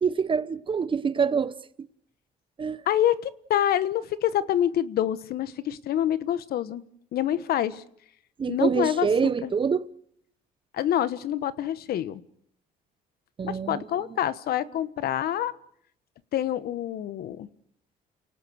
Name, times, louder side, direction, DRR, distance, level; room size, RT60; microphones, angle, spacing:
voice 1, 0.0-1.9 2.6-2.8 8.4-9.8 13.4-13.9, right 6 dB, 30° right, 0.9 m, -26 dB
voice 2, 2.9-6.8 7.1-7.8 8.5-9.1 9.4-9.5 10.7-12.2 13.4-15.5 16.3-17.5, left 11 dB, 65° left, 1.2 m, -26 dB
29.5 x 18.5 x 6.4 m
cardioid pair, 110°, 17 cm